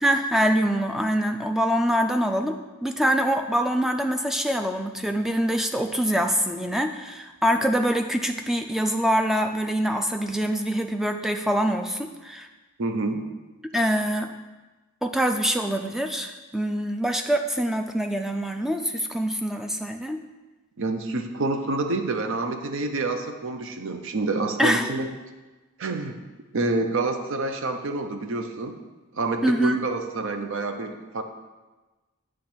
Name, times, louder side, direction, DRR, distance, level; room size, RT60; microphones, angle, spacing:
voice 1, 0.0-12.5 13.7-14.3 15.0-20.2 24.6-24.9 29.4-29.8, equal, ahead, 5 dB, 0.3 m, -24 dB
voice 2, 12.8-13.2 20.8-25.1 25.8-26.2 26.5-28.7 29.1-31.2, right 3 dB, 60° right, 6 dB, 0.6 m, -27 dB
8.3 x 3.1 x 6.0 m, 1.2 s
head